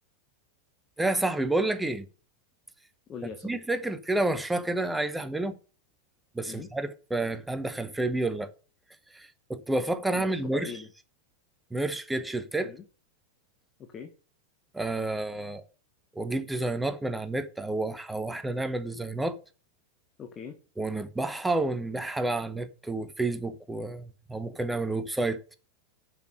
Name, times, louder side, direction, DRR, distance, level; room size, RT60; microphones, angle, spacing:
voice 1, 1.0-2.1 3.4-5.6 6.3-8.5 9.1-10.7 11.7-12.7 14.7-15.6 16.1-19.4 20.8-25.5, right 2 dB, 5° right, 1.0 m, -30 dB
voice 2, 3.1-3.6 6.5-6.7 10.1-10.9 12.6-12.8 13.8-14.1 20.2-20.6, left 6 dB, 25° left, 1.3 m, -41 dB
7.0 x 6.2 x 7.6 m
figure-of-eight pair, 90°, 0 cm